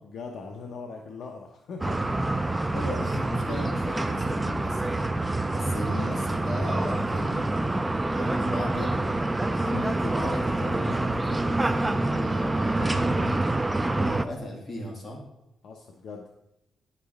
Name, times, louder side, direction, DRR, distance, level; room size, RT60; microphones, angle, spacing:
voice 1, 0.0-2.1 5.4-5.7 15.6-16.3, left 4 dB, 60° left, 2 dB, 0.8 m, -41 dB
sound 1, 1.8-14.3, right 2 dB, 10° right, 0.4 m, -27 dB
voice 2, 2.7-5.1 5.5-7.5 8.1-9.0 9.5-13.5 13.9-15.2, left 1 dB, 35° left, -2 dB, 2.5 m, -36 dB
9.7 x 6.8 x 3.5 m, 0.88 s
cardioid pair, 150°, 0 cm